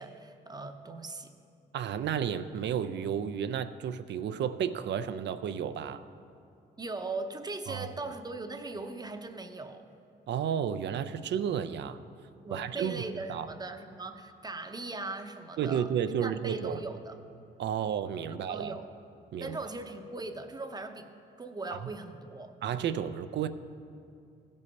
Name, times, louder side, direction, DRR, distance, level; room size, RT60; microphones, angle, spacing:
voice 1, 0.0-1.3 6.8-9.9 12.4-15.9 16.2-17.2 18.3-18.9 19.4-21.1 21.4-22.5, right 3 dB, 20° right, 7 dB, 0.7 m, -39 dB
voice 2, 1.7-6.0 7.7-7.9 10.3-12.0 12.5-13.5 15.6-16.8 17.6-18.7 19.3-19.6 21.8-21.9 22.6-23.5, right 8 dB, 65° right, 11 dB, 0.5 m, -32 dB
16.0 x 5.4 x 5.3 m, 2.4 s
cardioid pair, 90°, 20 cm